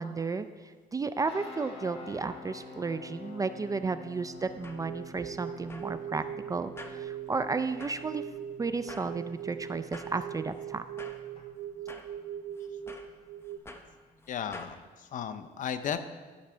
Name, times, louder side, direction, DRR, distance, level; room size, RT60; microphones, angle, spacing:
voice 1, 0.0-8.2 8.6-10.8, right 4 dB, 20° right, 11 dB, 0.4 m, -33 dB
sound 1, 1.2-11.4, left 2 dB, 35° left, 2.2 m, -49 dB
sound 2, 4.4-14.8, left 2 dB, 15° left, 0.8 m, -51 dB
sound 3, 4.8-13.6, right 9 dB, 80° right, 0.5 m, -41 dB
voice 2, 14.3-16.0, left 8 dB, 50° left, 10 dB, 0.7 m, -35 dB
13.0 x 6.0 x 4.4 m, 1.4 s
cardioid pair, 110°, 17 cm